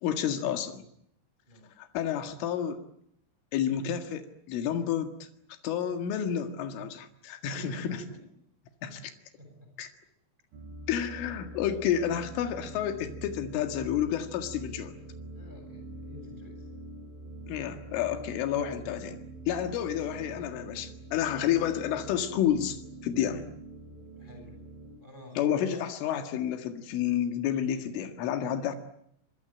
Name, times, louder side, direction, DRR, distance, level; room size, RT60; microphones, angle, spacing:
voice 1, 0.0-0.8 1.8-2.8 3.5-5.3 5.6-8.0 8.8-9.0 9.8-9.9 10.9-14.9 17.5-19.2 19.5-23.5 25.4-28.8, left 9 dB, 90° left, 6 dB, 4.5 m, -30 dB
voice 2, 7.5-8.2 8.8-9.0 9.3-9.7 15.3-16.7 19.8-20.8 24.2-24.6 25.0-25.8, left 1 dB, 10° right, 4 dB, 7.2 m, -49 dB
sound 1, 10.5-25.0, right 2 dB, 80° right, 5.9 m, -45 dB
26.5 x 24.5 x 9.0 m, 0.72 s
omnidirectional pair, 5.5 m